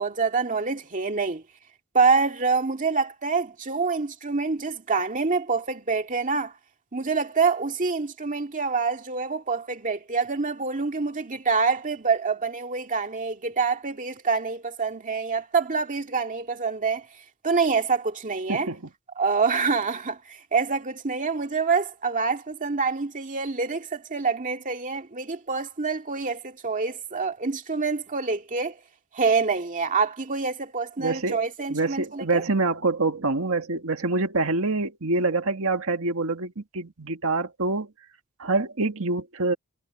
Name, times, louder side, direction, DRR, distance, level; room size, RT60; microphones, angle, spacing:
voice 1, 0.0-1.4 1.9-6.5 6.9-17.1 17.4-18.7 19.2-28.8 29.1-32.4, right 4 dB, 35° right, 2.1 m, -26 dB
voice 2, 31.0-31.4 31.7-37.9 38.4-39.5, right 3 dB, 65° right, 1.8 m, -26 dB
head